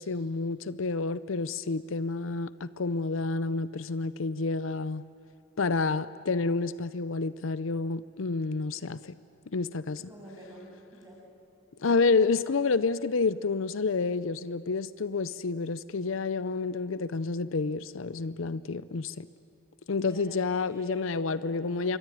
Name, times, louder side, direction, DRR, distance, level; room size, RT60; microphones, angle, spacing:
voice 1, 0.0-5.0 5.6-9.1 9.5-10.0 11.8-19.3 19.9-22.0, left 4 dB, 75° left, 0.6 m, -29 dB
voice 2, 10.0-11.2 20.0-21.6, equal, 15° right, 7.6 m, -47 dB
27.5 x 23.0 x 9.3 m
head